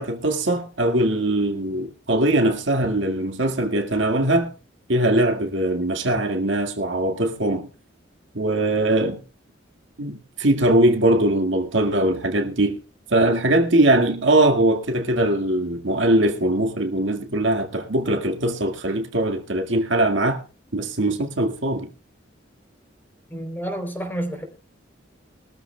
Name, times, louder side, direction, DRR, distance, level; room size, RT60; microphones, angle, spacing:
voice 1, 0.0-4.5 4.9-7.7 8.3-9.2 10.0-12.8 13.1-20.4 20.7-21.9, right 1 dB, 70° right, 1.9 m, -21 dB
voice 2, 23.3-24.5, right 1 dB, 10° left, 3.6 m, -29 dB
22.5 x 13.5 x 2.3 m
head